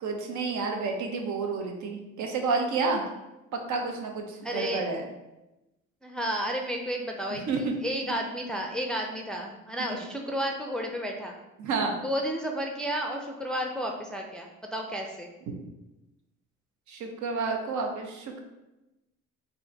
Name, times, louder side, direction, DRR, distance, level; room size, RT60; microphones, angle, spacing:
voice 1, 0.0-3.0 3.7-5.0 7.5-7.7 11.6-12.0 16.9-18.4, right 4 dB, 75° right, 3 dB, 0.8 m, -30 dB
voice 2, 4.4-4.9 6.0-11.4 12.0-15.3, equal, 5° left, 1 dB, 0.4 m, -32 dB
3.7 x 2.6 x 4.4 m, 0.98 s
cardioid pair, 90°, 30 cm